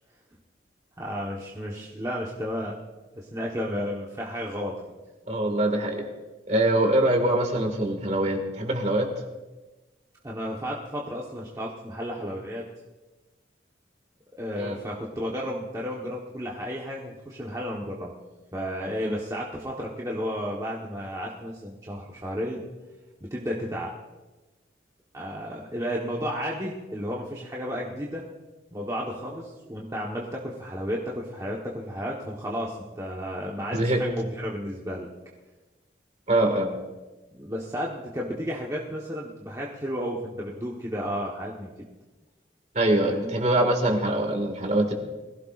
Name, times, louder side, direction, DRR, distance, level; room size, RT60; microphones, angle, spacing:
voice 1, 1.0-2.7 3.2-4.8 10.2-12.6 14.4-18.1 18.5-22.6 23.3-23.9 25.1-28.3 28.7-35.1 37.3-41.7 43.0-43.3, equal, 20° right, -4 dB, 1.2 m, -32 dB
voice 2, 5.3-6.1 6.5-9.1 14.6-14.8 19.0-19.2 33.7-34.0 36.3-36.8 42.7-44.9, right 1 dB, 40° right, 3 dB, 2.0 m, -23 dB
22.5 x 16.0 x 2.5 m, 1.2 s
head